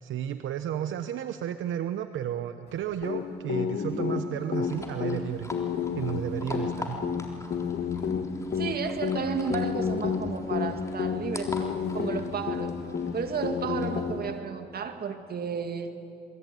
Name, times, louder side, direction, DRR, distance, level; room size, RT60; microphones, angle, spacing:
voice 1, 0.0-5.5 5.9-7.0, right 10 dB, 80° right, 9 dB, 1.0 m, -33 dB
sound 1, 3.0-14.4, left 6 dB, 55° left, 2.0 m, -31 dB
sound 2, 4.6-14.1, left 2 dB, 15° left, 3.7 m, -44 dB
voice 2, 8.6-12.8 13.1-16.0, right 5 dB, 50° right, 7 dB, 2.4 m, -33 dB
28.0 x 22.0 x 9.3 m, 2.6 s
cardioid pair, 90°, 20 cm